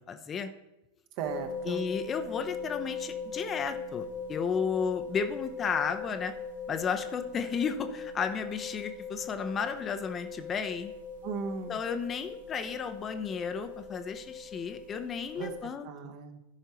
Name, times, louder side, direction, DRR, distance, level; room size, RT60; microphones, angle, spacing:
voice 1, 0.1-0.5 1.7-6.3 6.7-10.9 11.7-16.1, left 6 dB, 25° left, 8 dB, 0.6 m, -33 dB
voice 2, 1.2-1.9 11.2-11.8 15.4-15.5 15.8-16.4, right 6 dB, 45° right, 6 dB, 1.0 m, -37 dB
sound 1, 1.2-15.6, left 4 dB, 75° right, 1.9 m, -40 dB
13.5 x 5.5 x 3.0 m, 0.93 s
figure-of-eight pair, 90°, 0 cm